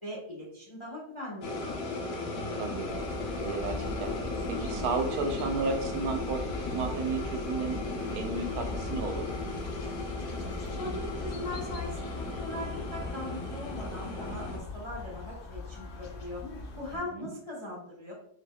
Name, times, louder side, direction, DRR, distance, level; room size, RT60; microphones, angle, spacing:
voice 1, 0.0-1.8 10.8-16.4 16.7-18.1, left 1 dB, 25° left, -6 dB, 0.8 m, -40 dB
sound 1, 1.4-14.6, left 2 dB, 80° left, 1.3 m, -36 dB
voice 2, 2.5-2.9 3.4-4.2 4.5-7.8 8.1-9.3 17.1-17.3, right 4 dB, 85° right, 4 dB, 1.1 m, -33 dB
sound 2, 2.8-17.0, left 3 dB, 60° left, 0.5 m, -41 dB
4.1 x 3.4 x 2.2 m, 0.68 s
omnidirectional pair, 1.6 m